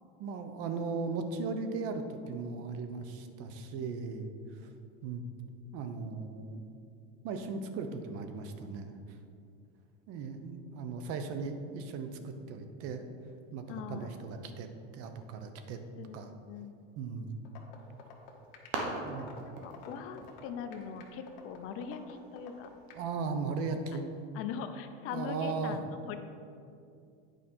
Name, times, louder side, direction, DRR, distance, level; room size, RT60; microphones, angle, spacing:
voice 1, 0.2-4.7 5.0-5.2 5.7-6.6 7.2-9.0 10.1-13.0 13.5-15.8 16.1-16.3 17.0-17.4 19.0-19.3 22.9-24.1 25.1-25.8, right 4 dB, 45° right, 8 dB, 0.8 m, -37 dB
voice 2, 13.7-14.2 16.0-16.8 19.4-22.7 23.7-23.8 24.3-26.2, left 7 dB, 45° left, 7 dB, 0.7 m, -41 dB
sound 1, 17.4-23.0, left 8 dB, 65° left, 1.3 m, -50 dB
sound 2, 17.8-22.9, right 2 dB, 80° right, 1.5 m, -43 dB
9.0 x 5.1 x 4.3 m, 2.4 s
supercardioid pair, 135°, 32 cm